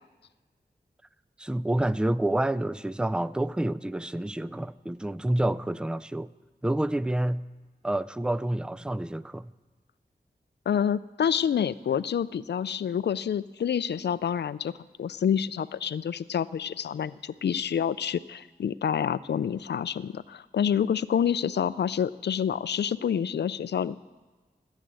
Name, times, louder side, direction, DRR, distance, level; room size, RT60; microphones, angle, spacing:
voice 1, 1.4-6.3 6.6-7.5 7.8-9.5, right 1 dB, 5° right, 17 dB, 0.4 m, -28 dB
voice 2, 10.7-14.7 15.0-24.0, left 8 dB, 85° left, 17 dB, 0.4 m, -28 dB
15.5 x 8.2 x 7.6 m, 1.3 s
wide cardioid pair, 60°, 17 cm